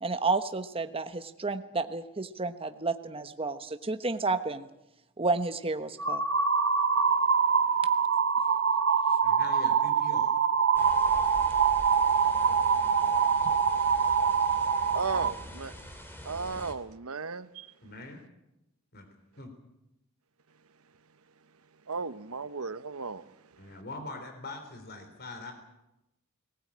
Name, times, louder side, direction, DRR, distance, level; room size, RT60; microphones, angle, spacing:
voice 1, 0.0-4.7 5.2-6.2, right 3 dB, 25° right, 1.1 m, -31 dB
sound 1, 6.0-15.3, right 6 dB, 60° right, 1.4 m, -25 dB
voice 2, 9.2-10.4 17.8-18.2 18.9-19.1 19.4-19.5 23.6-25.5, left 2 dB, 45° left, 3.6 m, -42 dB
sound 2, 10.7-16.7, equal, 10° left, 3.0 m, -45 dB
voice 3, 14.9-15.7 16.2-17.7 21.9-23.3, right 4 dB, 80° right, 1.0 m, -35 dB
19.0 x 19.0 x 8.7 m
head